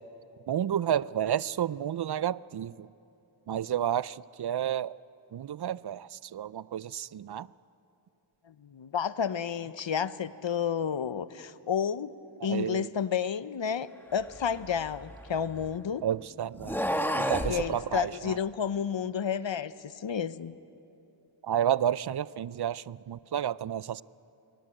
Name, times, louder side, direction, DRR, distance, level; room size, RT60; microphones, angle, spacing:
voice 1, 0.5-2.9 3.5-4.9 5.3-7.5 12.5-12.9 16.0-18.4 21.4-24.0, right 10 dB, 55° right, 20 dB, 0.5 m, -31 dB
voice 2, 8.5-12.1 12.4-16.0 17.5-20.5, left 7 dB, 60° left, 15 dB, 0.8 m, -31 dB
sound 1, 14.3-15.8 16.5-17.6, equal, 5° left, 1.3 m, -31 dB
22.5 x 18.0 x 9.0 m, 2.8 s
wide cardioid pair, 45°, 50 cm